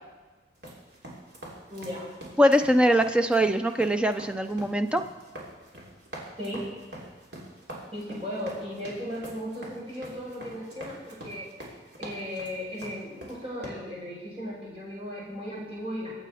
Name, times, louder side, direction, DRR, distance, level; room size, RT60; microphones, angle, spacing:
sound 1, 0.6-13.7, right 1 dB, 65° right, 3.2 m, -44 dB
voice 1, 1.7-2.1 6.4-6.6 7.9-11.4 12.0-16.1, equal, 30° right, -5 dB, 5.3 m, -36 dB
voice 2, 2.4-5.0, equal, 5° right, 8 dB, 0.5 m, -22 dB
23.0 x 8.3 x 4.2 m, 1.3 s
head